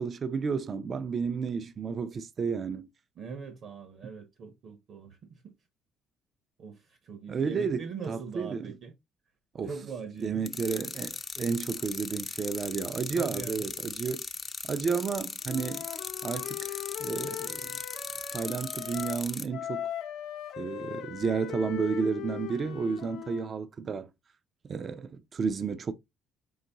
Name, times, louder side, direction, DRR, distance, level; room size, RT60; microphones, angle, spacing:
voice 1, 0.0-2.9 7.3-8.7 9.5-9.7 10.2-14.3 14.6-15.9 16.2-17.8 18.3-19.9 20.6-24.1 24.7-25.9, right 5 dB, 35° right, 0.4 m, -32 dB
voice 2, 3.2-5.5 6.6-8.9 9.6-10.5 13.2-13.6, right 5 dB, 55° right, 0.9 m, -41 dB
sound 1, 10.5-19.5, left 4 dB, 25° left, 0.5 m, -38 dB
Wind instrument woodwind instrument, 15.4-19.3 19.5-23.5, left 10 dB, 75° left, 0.7 m, -39 dB
4.4 x 3.9 x 2.8 m
cardioid pair, 130°, 0 cm